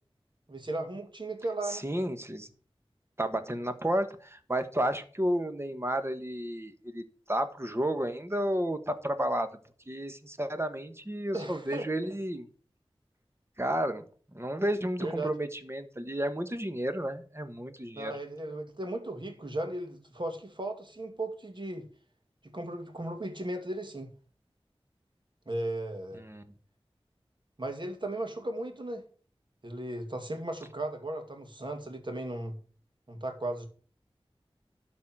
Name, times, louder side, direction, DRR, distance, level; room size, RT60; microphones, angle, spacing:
voice 1, 0.5-1.8 11.3-12.1 15.0-15.3 17.9-21.9 22.5-24.1 25.5-26.2 27.6-29.0 29.6-32.6 33.1-33.7, right 1 dB, 50° right, 2.4 m, -36 dB
voice 2, 1.7-2.5 3.2-9.5 9.9-12.5 13.6-14.0 14.3-18.1 26.2-26.4, right 1 dB, 25° right, 1.5 m, -32 dB
12.5 x 4.3 x 7.5 m
wide cardioid pair, 40°, 10 cm